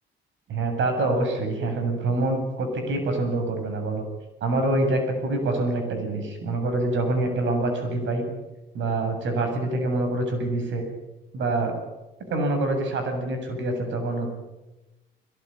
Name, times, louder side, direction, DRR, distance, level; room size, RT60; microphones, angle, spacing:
voice 1, 0.5-4.0 4.4-8.2 8.7-10.9 11.3-11.7 12.3-14.3, right 2 dB, 75° right, 5 dB, 7.8 m, -25 dB
21.5 x 18.5 x 10.0 m, 1.0 s
cardioid pair, 90°, 20 cm